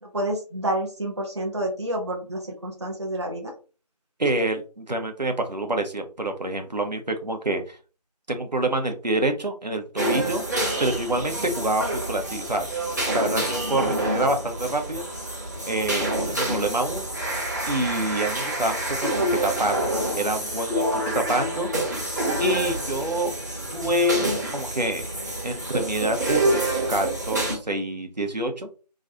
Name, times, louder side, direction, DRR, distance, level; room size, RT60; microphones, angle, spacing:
voice 1, 0.0-3.5 11.3-11.5, right 1 dB, 40° right, 1 dB, 0.7 m, -29 dB
voice 2, 4.2-7.8 8.3-10.4 10.8-12.7 13.1-15.2 15.7-17.1 17.7-19.8 20.1-21.7 22.4-23.3 23.7-25.1 25.4-28.7, right 1 dB, 80° right, 5 dB, 1.1 m, -27 dB
sound 1, 10.0-27.6, right 1 dB, 25° right, 1.1 m, -27 dB
3.1 x 2.5 x 3.9 m, 0.35 s
figure-of-eight pair, 165°, 21 cm